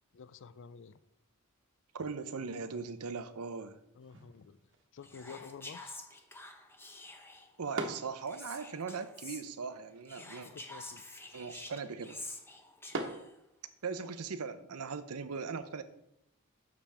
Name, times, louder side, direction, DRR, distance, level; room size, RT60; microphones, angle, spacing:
voice 1, 0.1-1.0 3.9-4.6 4.9-6.0 10.1-11.0, left 6 dB, 60° left, 15 dB, 0.4 m, -50 dB
voice 2, 1.9-3.8 7.6-10.5 11.3-12.2 13.8-15.8, right 5 dB, 85° right, 11 dB, 0.7 m, -39 dB
sound 1, 4.0-14.0, right 2 dB, 60° right, 1.2 m, -47 dB
Whispering, 5.0-7.6 8.3-9.4 10.1-13.3, left 2 dB, 10° left, 0.8 m, -48 dB
10.5 x 6.9 x 3.4 m, 0.81 s
head